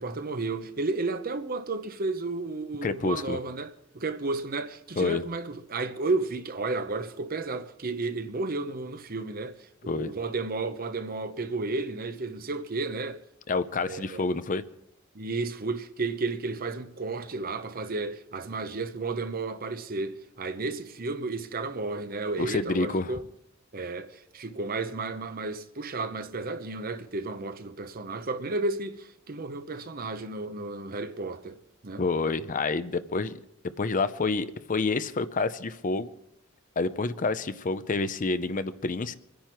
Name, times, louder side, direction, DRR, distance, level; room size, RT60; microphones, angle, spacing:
voice 1, 0.0-9.5 9.8-13.2 13.8-14.3 15.1-23.3 23.7-31.6 31.8-32.0, right 3 dB, 45° right, 0.9 m, -32 dB
voice 2, 2.8-3.4 5.0-5.2 9.9-10.1 13.5-14.6 22.4-23.1 32.0-33.4 33.8-36.1 36.8-39.1, left 3 dB, 40° left, 0.6 m, -28 dB
24.5 x 10.5 x 4.5 m
head